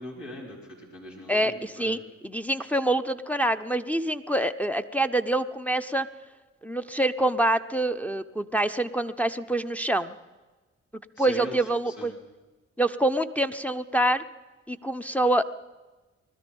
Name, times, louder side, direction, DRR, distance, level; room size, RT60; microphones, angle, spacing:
voice 1, 0.0-2.0 11.1-12.1, left 1 dB, 85° left, -4 dB, 4.3 m, -41 dB
voice 2, 1.3-6.1 6.6-10.1 11.2-12.1 12.8-14.2 14.7-15.4, right 1 dB, 5° left, 6 dB, 0.7 m, -26 dB
20.0 x 12.5 x 5.4 m, 1.2 s
supercardioid pair, 45°, 29 cm